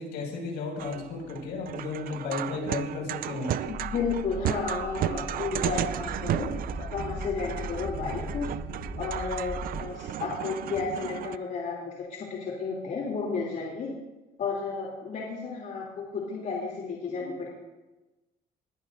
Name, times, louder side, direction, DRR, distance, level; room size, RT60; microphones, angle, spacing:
voice 1, 0.0-3.6, left 3 dB, 80° left, 0 dB, 5.9 m, -34 dB
sound 1, 0.8-11.4, right 12 dB, 60° right, 0.5 m, -34 dB
voice 2, 3.7-6.5 6.9-8.5 9.0-13.9 14.4-17.5, left 4 dB, 55° left, -3 dB, 3.0 m, -32 dB
sound 2, 3.7-9.8, left 1 dB, 5° left, 5.7 m, -38 dB
21.0 x 15.0 x 2.7 m, 1.1 s
cardioid pair, 110°, 17 cm